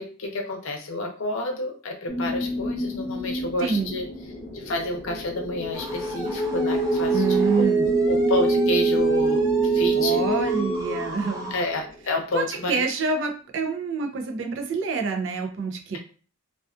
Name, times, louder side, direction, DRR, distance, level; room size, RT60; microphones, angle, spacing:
voice 1, 0.0-4.0 4.5-7.2 7.5-10.2 11.5-12.8, left 2 dB, 75° left, 2 dB, 0.6 m, -30 dB
sound 1, 2.1-11.9, right 3 dB, 20° left, 0.8 m, -25 dB
voice 2, 3.6-3.9 7.1-8.0 10.0-11.5 12.3-16.0, right 4 dB, 60° right, 4 dB, 0.4 m, -27 dB
sound 2, 5.7-11.6, equal, 40° right, 1.1 m, -38 dB
2.4 x 2.3 x 2.4 m, 0.40 s
head